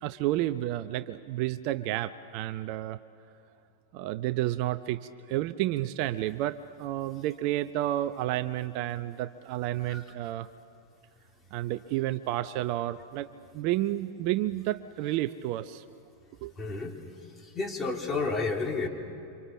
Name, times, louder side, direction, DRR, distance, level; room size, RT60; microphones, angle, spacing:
voice 1, 0.0-3.0 3.9-5.0 5.3-10.5 11.5-13.3 13.5-15.8 16.4-16.5, right 14 dB, 45° right, 14 dB, 0.6 m, -31 dB
voice 2, 16.6-17.0 17.4-18.9, left 3 dB, 15° left, 2 dB, 3.0 m, -31 dB
29.0 x 25.0 x 7.4 m, 2.6 s
figure-of-eight pair, 90°, 0 cm